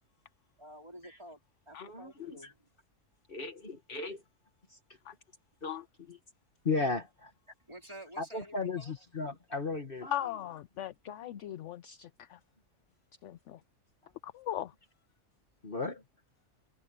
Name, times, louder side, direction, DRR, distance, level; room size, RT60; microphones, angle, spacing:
voice 1, 0.6-2.7 7.6-8.9, right 1 dB, 20° right, 3.8 m, -50 dB
voice 2, 1.8-2.5 3.3-4.2 4.7-4.8 5.6-6.2 6.7-7.3 8.2-10.2 11.2-11.6 15.6-16.0, left 3 dB, 40° left, 1.6 m, -36 dB
voice 3, 10.1-12.4 13.2-13.6 14.2-14.7, left 11 dB, 65° left, 0.8 m, -39 dB
omnidirectional pair, 1.5 m